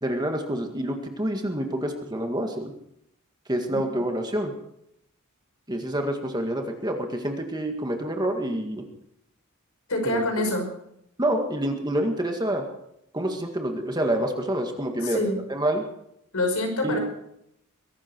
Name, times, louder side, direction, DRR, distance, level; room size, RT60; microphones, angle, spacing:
voice 1, 0.0-2.7 3.5-4.5 5.7-8.8 10.0-10.2 11.2-12.7 13.1-15.2 15.5-15.8 16.8-17.0, right 1 dB, 20° right, 4 dB, 1.9 m, -27 dB
voice 2, 9.9-10.7 15.0-15.4 16.3-17.0, left 1 dB, 85° left, 3 dB, 5.2 m, -26 dB
22.0 x 12.0 x 4.6 m, 0.77 s
head